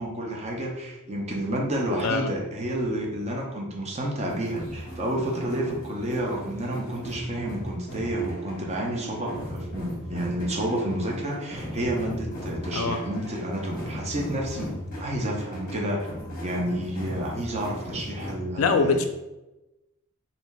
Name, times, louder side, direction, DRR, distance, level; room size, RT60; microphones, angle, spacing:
voice 1, 0.0-14.7 15.0-16.1 16.4-19.0, right 1 dB, 30° right, -1 dB, 0.5 m, -30 dB
sound 1, 4.3-18.3, equal, 40° left, 0.8 m, -38 dB
voice 2, 18.6-19.0, left 4 dB, 65° left, 6 dB, 0.3 m, -23 dB
3.1 x 2.5 x 2.2 m, 1.0 s
head